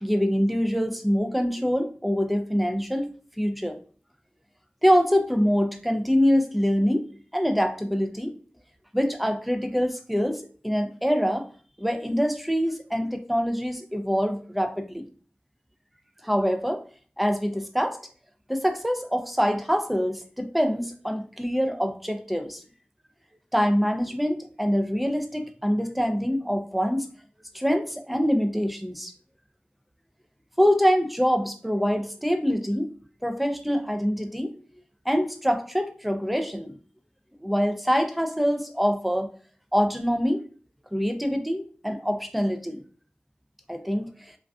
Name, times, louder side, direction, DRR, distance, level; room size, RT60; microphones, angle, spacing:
voice 1, 0.0-3.1 3.4-3.8 4.8-8.3 8.9-11.5 11.8-15.1 16.2-16.8 17.2-18.0 18.5-22.6 23.5-27.1 27.5-29.1 30.6-32.9 33.2-34.5 35.1-36.7 37.4-39.3 39.7-40.4 40.9-42.8 43.7-44.1, equal, ahead, 6 dB, 0.3 m, -25 dB
2.4 x 2.3 x 2.3 m, 0.42 s
wide cardioid pair, 60°, 4 cm